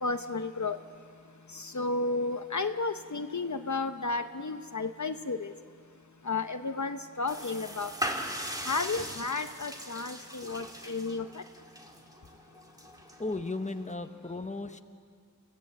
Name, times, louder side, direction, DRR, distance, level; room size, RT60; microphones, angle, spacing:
voice 1, 0.0-0.8 1.7-5.5 6.3-7.9 8.7-11.2, left 3 dB, 60° left, 8 dB, 0.9 m, -32 dB
sound 1, 7.3-13.9, equal, 10° right, 2.2 m, -40 dB
voice 2, 13.2-14.8, left 2 dB, 20° left, 8 dB, 1.1 m, -35 dB
27.0 x 15.5 x 7.9 m, 2.1 s
wide cardioid pair, 50°, 34 cm